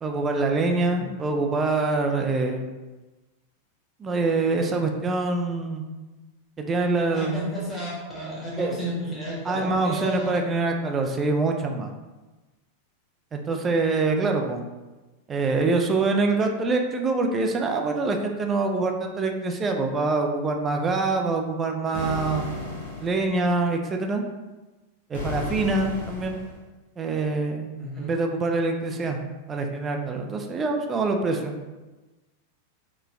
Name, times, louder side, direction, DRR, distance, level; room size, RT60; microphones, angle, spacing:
voice 1, 0.0-2.7 4.0-5.8 6.6-7.5 8.6-8.8 9.4-11.9 13.3-14.6 15.3-22.6 23.0-24.2 25.1-26.4 27.0-27.7 28.0-29.2 29.5-31.5, right 3 dB, 20° right, 3 dB, 0.3 m, -25 dB
voice 2, 7.1-10.4 27.7-28.1, equal, 5° left, -7 dB, 1.2 m, -32 dB
sound 1, 21.9-23.4 25.1-26.6, left 3 dB, 60° left, 0.7 m, -33 dB
3.9 x 2.2 x 2.4 m, 1.2 s
figure-of-eight pair, 90°, 0 cm